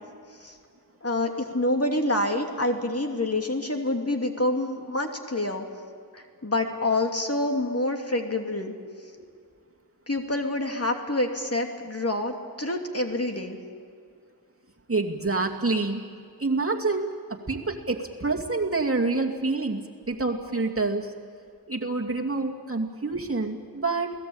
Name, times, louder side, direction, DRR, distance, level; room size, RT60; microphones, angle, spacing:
voice 1, 1.0-5.6 6.1-8.7 10.1-13.6, left 2 dB, 40° left, 3 dB, 2.8 m, -27 dB
voice 2, 14.9-16.0 16.4-21.1 21.7-24.1, right 3 dB, 35° right, 1 dB, 2.4 m, -27 dB
29.0 x 19.0 x 8.8 m, 2.3 s
wide cardioid pair, 65°, 38 cm